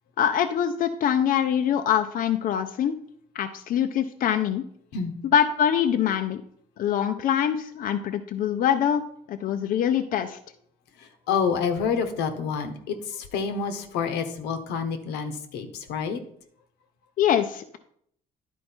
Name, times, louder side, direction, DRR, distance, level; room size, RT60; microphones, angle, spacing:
voice 1, 0.2-3.0 3.3-4.6 5.2-6.4 6.8-9.0 9.3-10.4 17.2-17.8, left 9 dB, 55° left, 7 dB, 0.6 m, -24 dB
voice 2, 11.0-16.2, left 6 dB, 85° left, 7 dB, 1.1 m, -28 dB
11.0 x 4.5 x 4.4 m, 0.67 s
cardioid pair, 110°, 17 cm